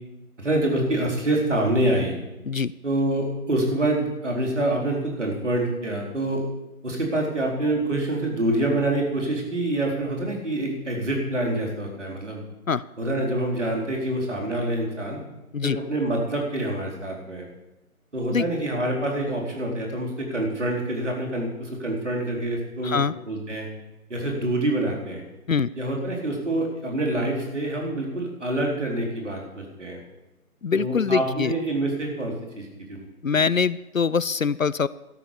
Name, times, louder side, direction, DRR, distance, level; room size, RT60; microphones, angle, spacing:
voice 1, 0.4-2.2 2.8-6.4 6.8-12.4 13.0-15.2 15.6-17.5 18.1-23.7 24.1-25.2 25.7-30.0 30.7-33.1 33.3-33.5, right 1 dB, 50° right, 0 dB, 4.4 m, -26 dB
voice 2, 22.8-23.1 25.5-25.7 30.6-31.5 33.2-34.9, left 6 dB, 65° left, 19 dB, 0.5 m, -23 dB
13.5 x 10.0 x 7.0 m, 0.98 s
figure-of-eight pair, 170°, 45 cm